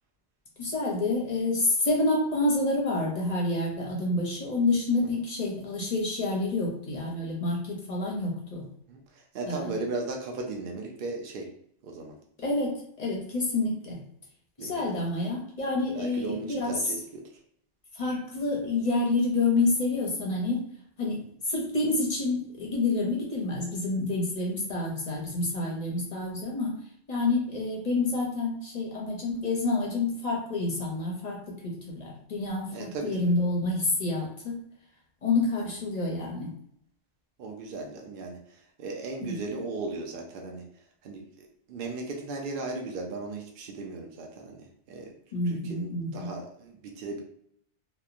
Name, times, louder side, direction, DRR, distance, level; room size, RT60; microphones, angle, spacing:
voice 1, 0.6-8.7 9.5-9.7 12.4-12.7 13.0-14.0 14.6-16.9 17.9-20.6 21.0-21.2 21.5-26.7 27.1-34.6 35.2-36.5 39.2-39.5 45.3-46.3, left 2 dB, 45° left, -2 dB, 0.6 m, -28 dB
voice 2, 8.9-11.5 11.8-12.1 14.6-14.8 15.9-17.2 32.7-33.3 37.4-38.4 38.8-40.6 41.0-45.1 45.5-47.2, right 3 dB, 60° right, 1 dB, 0.6 m, -37 dB
2.9 x 2.1 x 2.4 m, 0.68 s
omnidirectional pair, 1.2 m